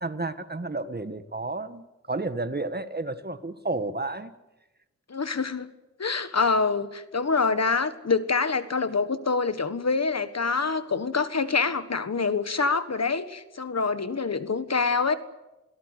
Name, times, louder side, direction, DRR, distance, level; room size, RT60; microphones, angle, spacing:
voice 1, 0.0-4.3, right 2 dB, 35° right, 11 dB, 1.5 m, -31 dB
voice 2, 5.1-5.7 6.0-15.2, left 4 dB, 60° left, 12 dB, 1.5 m, -26 dB
28.5 x 18.0 x 8.3 m, 1.0 s
wide cardioid pair, 65°, 30 cm